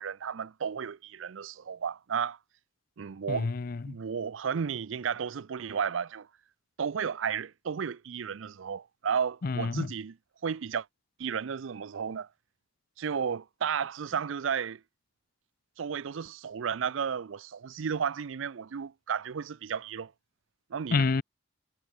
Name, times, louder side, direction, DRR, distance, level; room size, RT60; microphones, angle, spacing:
voice 1, 0.0-2.4 3.0-3.5 3.9-6.3 6.8-10.1 10.4-10.9 11.2-12.3 13.0-14.8 15.8-20.1 20.7-21.1, right 7 dB, 80° right, 0.5 m, -33 dB
voice 2, 3.3-4.0 9.4-9.9 20.9-21.2, left 4 dB, 50° left, 0.5 m, -28 dB
head